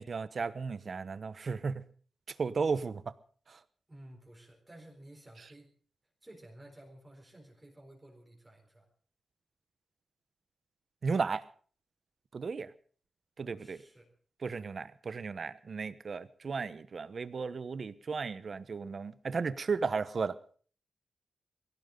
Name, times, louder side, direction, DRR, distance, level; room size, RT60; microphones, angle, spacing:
voice 1, 0.0-1.8 2.4-3.0 3.5-3.6 11.0-11.4 12.3-12.7 13.4-13.8 14.4-20.4, right 5 dB, 45° right, 15 dB, 1.0 m, -34 dB
voice 2, 3.9-5.7 6.2-8.9 13.4-14.1 14.6-14.8, right 1 dB, 15° right, 1 dB, 4.2 m, -54 dB
21.5 x 17.5 x 3.9 m, 0.43 s
wide cardioid pair, 140°, 0 cm